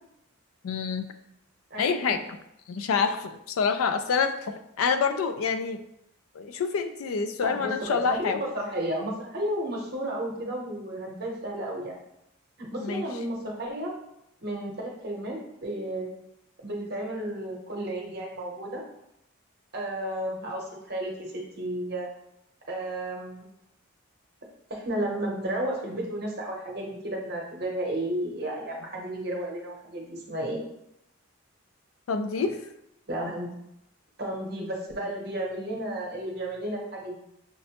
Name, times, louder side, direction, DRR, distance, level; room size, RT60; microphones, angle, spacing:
voice 1, 0.6-1.1 1.8-2.2 2.7-5.8 6.3-8.4 12.8-13.0 32.1-32.6, left 5 dB, 85° left, 8 dB, 0.4 m, -27 dB
voice 2, 1.7-2.1 7.4-12.0 12.6-13.9 14.4-16.1 16.6-18.8 19.7-22.1 22.7-23.5 24.7-30.6 33.1-33.5 34.2-37.2, right 1 dB, 50° right, -1 dB, 0.8 m, -33 dB
5.8 x 2.1 x 2.8 m, 0.81 s
head